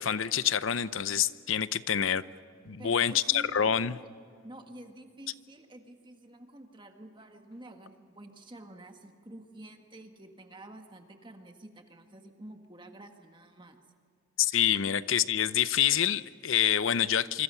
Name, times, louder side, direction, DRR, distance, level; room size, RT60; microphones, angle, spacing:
voice 1, 0.0-2.2 2.7-4.0 14.4-17.4, left 9 dB, 70° left, 15 dB, 0.7 m, -27 dB
voice 2, 2.7-3.7 4.4-13.8, right 1 dB, 25° right, 5 dB, 1.6 m, -49 dB
26.0 x 25.5 x 5.7 m, 2.3 s
head